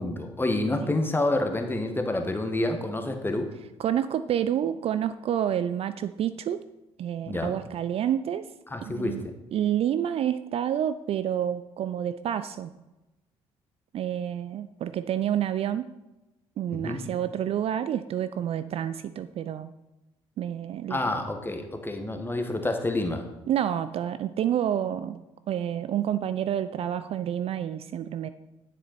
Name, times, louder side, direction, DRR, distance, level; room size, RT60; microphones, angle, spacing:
voice 1, 0.0-3.5 7.3-7.5 8.7-9.3 16.7-17.0 20.9-23.2, left 2 dB, 15° left, 6 dB, 1.5 m, -28 dB
voice 2, 3.8-6.6 7.0-8.5 8.8-12.7 13.9-15.9 16.6-19.7 20.4-21.0 23.5-28.3, right 10 dB, 45° right, 13 dB, 0.4 m, -29 dB
10.0 x 7.6 x 4.3 m, 1.0 s
figure-of-eight pair, 45°, 14 cm